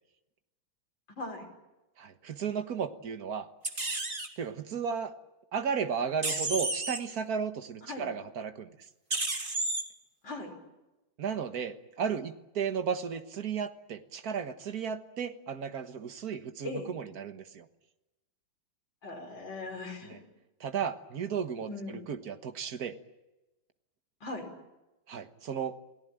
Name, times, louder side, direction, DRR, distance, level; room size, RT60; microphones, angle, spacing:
voice 1, 1.1-1.5 7.9-8.1 10.2-10.5 16.6-16.9 19.0-20.1 21.7-22.0 24.2-24.5, left 2 dB, 70° left, 2 dB, 6.0 m, -39 dB
voice 2, 2.0-3.5 4.4-5.1 5.5-8.8 11.2-17.7 20.1-20.2 20.6-23.0 25.1-25.8, right 7 dB, 55° right, 8 dB, 1.8 m, -34 dB
sound 1, 3.6-4.3 6.2-7.0 9.1-9.8, right 2 dB, 25° right, 2.5 m, -31 dB
28.5 x 18.0 x 9.1 m, 1.0 s
omnidirectional pair, 2.1 m